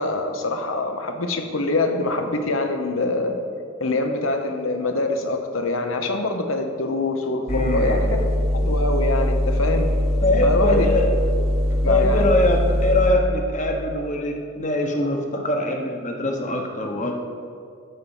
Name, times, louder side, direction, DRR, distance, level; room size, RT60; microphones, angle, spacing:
voice 1, 0.0-3.4 3.8-8.3 8.5-9.9 10.4-10.9 11.8-12.3, left 2 dB, 85° left, 5 dB, 1.1 m, -24 dB
voice 2, 7.5-8.0 10.2-11.1 11.9-17.1, left 1 dB, 35° left, 2 dB, 1.1 m, -23 dB
sound 1, 7.5-13.1, left 1 dB, 30° right, 1.0 m, -22 dB
12.5 x 4.8 x 7.2 m, 2.4 s
head